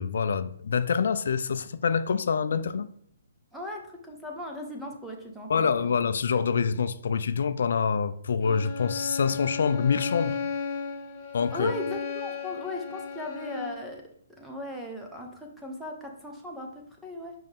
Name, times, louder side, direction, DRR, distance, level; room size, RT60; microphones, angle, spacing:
voice 1, 0.0-2.9 5.5-10.4 11.3-11.7, left 6 dB, 70° left, 0.4 m, -26 dB
voice 2, 3.5-6.0 11.5-14.0 14.4-17.3, left 1 dB, ahead, 1.0 m, -38 dB
Bowed string instrument, 8.4-13.9, left 5 dB, 25° left, 1.4 m, -35 dB
5.4 x 5.2 x 3.6 m
hypercardioid pair, 155°, 0 cm